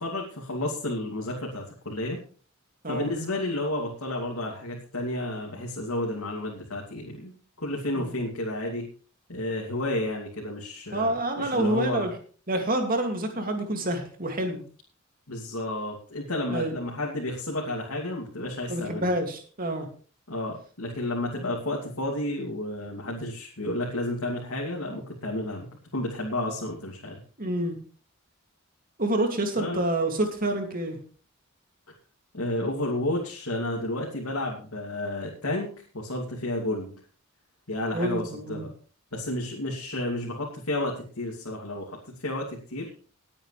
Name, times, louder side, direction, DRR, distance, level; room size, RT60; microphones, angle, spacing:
voice 1, 0.0-2.2 2.9-8.9 9.3-12.1 15.3-19.1 20.3-27.2 29.6-29.8 32.3-36.9 37.7-38.7 39.1-42.9, left 1 dB, 80° left, -3 dB, 2.8 m, -31 dB
voice 2, 10.9-12.1 12.5-14.6 16.5-16.8 18.7-19.9 27.4-27.8 29.0-31.0 37.9-38.7, right 1 dB, 40° right, 4 dB, 2.6 m, -27 dB
20.0 x 8.8 x 3.4 m, 0.41 s
head